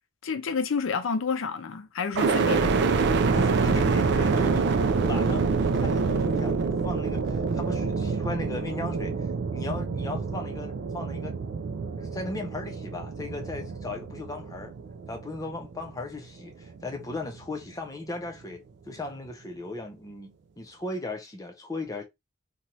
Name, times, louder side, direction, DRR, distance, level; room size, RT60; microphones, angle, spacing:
voice 1, 0.2-2.7, left 5 dB, 70° left, 0.5 m, -29 dB
sound 1, 2.1-16.2 16.7-17.4, right 4 dB, 55° right, 0.3 m, -26 dB
voice 2, 3.2-9.3 9.5-11.4 12.0-14.7 15.1-22.0, left 2 dB, 15° left, 0.6 m, -37 dB
2.8 x 2.3 x 3.0 m
head